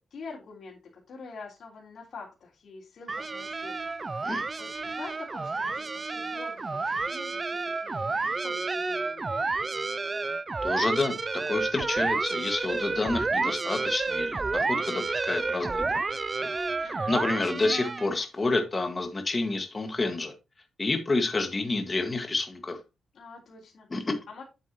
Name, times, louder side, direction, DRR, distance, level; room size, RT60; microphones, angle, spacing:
voice 1, 0.1-4.1 4.6-9.6 16.8-17.2 23.1-24.4, left 4 dB, 55° left, -5 dB, 3.4 m, -46 dB
sound 1, 3.1-18.2, right 3 dB, 25° right, 0.3 m, -30 dB
voice 2, 10.6-11.1 11.5-16.0 16.4-16.5 17.1-20.3 20.8-22.8 23.9-24.1, left 2 dB, 25° left, 5 dB, 1.7 m, -29 dB
8.4 x 7.8 x 3.0 m, 0.26 s
wide cardioid pair, 145°, 0 cm